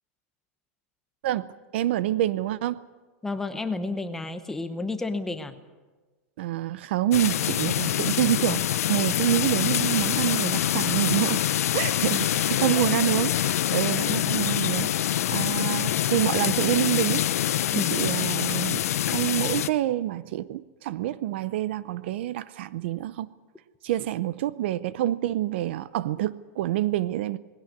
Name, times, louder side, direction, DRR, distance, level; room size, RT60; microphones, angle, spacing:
voice 1, 1.2-2.8 6.4-11.4 11.7-17.3 17.7-18.8 19.1-23.3 23.8-27.4, right 13 dB, 50° right, 17 dB, 0.6 m, -27 dB
voice 2, 3.2-5.5 12.6-12.8 17.7-17.9, left 3 dB, 5° left, 8 dB, 0.9 m, -31 dB
sound 1, 7.1-19.7, left 11 dB, 85° left, 0.7 m, -25 dB
20.0 x 16.5 x 9.6 m, 1.3 s
supercardioid pair, 175°, 8 cm